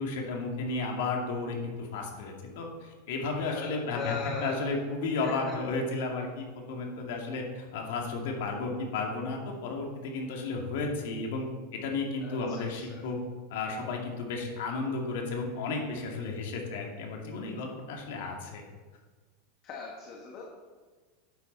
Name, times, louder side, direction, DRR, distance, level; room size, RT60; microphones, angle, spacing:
voice 1, 0.0-11.5 11.7-13.2 13.5-18.6, left 3 dB, 70° left, 1 dB, 2.3 m, -33 dB
voice 2, 3.9-4.6 12.2-12.4 12.9-13.0 19.6-20.4, left 5 dB, 35° left, -1 dB, 1.6 m, -37 dB
11.5 x 8.8 x 4.1 m, 1.4 s
supercardioid pair, 155°, 0 cm